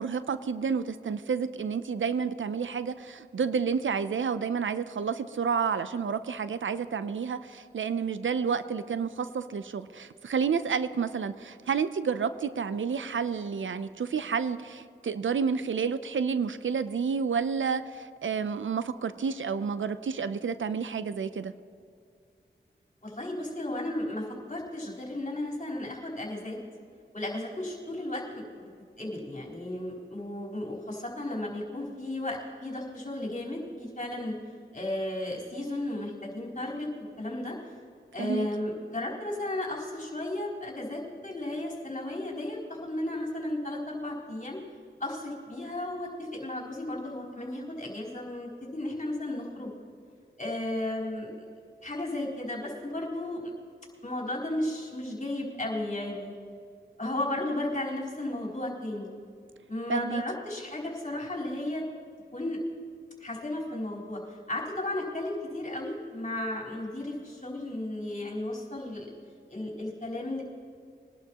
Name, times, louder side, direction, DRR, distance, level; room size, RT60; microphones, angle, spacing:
voice 1, 0.0-21.5 38.2-38.5 59.9-60.2, right 6 dB, 80° right, 13 dB, 0.5 m, -30 dB
voice 2, 23.0-26.6 27.1-28.7 29.0-34.3 34.7-36.9 37.2-37.6 38.1-44.6 45.0-49.7 50.4-51.5 51.8-53.5 54.0-56.3 57.0-59.1 59.7-61.8 62.3-62.6 63.2-64.2 64.5-69.1 69.5-70.4, left 1 dB, 40° left, -4 dB, 4.1 m, -34 dB
22.5 x 11.5 x 2.9 m, 2.3 s
cardioid pair, 45°, 20 cm